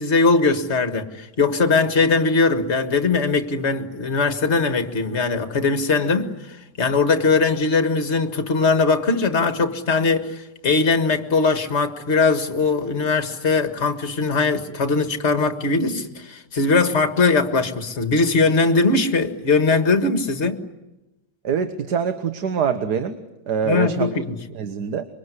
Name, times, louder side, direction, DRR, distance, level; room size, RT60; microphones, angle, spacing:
voice 1, 0.0-20.6 23.6-24.4, left 4 dB, 40° left, 1.9 m, -20 dB
voice 2, 21.4-23.2 23.5-24.1 24.5-25.1, right 7 dB, 70° right, 1.8 m, -24 dB
25.0 x 23.5 x 9.7 m
omnidirectional pair, 1.8 m